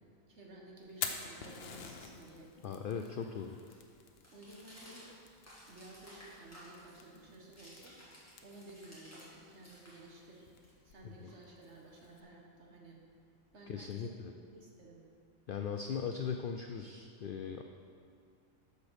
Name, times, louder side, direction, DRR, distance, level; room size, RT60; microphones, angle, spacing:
voice 1, 0.3-2.5 2.9-3.1 4.3-5.1 5.7-8.0 8.4-10.5 10.8-13.0 13.5-15.0, right 2 dB, 55° right, -1 dB, 1.7 m, -54 dB
Fire, 0.8-12.2, left 5 dB, 55° left, 0.9 m, -49 dB
sound 1, 2.5-9.3 9.6-11.8, equal, 10° left, 2.2 m, -58 dB
voice 2, 2.6-3.5 11.2-11.3 13.7-14.3 15.5-17.6, left 6 dB, 80° left, 5 dB, 0.4 m, -39 dB
8.3 x 6.9 x 6.3 m, 2.3 s
omnidirectional pair, 1.5 m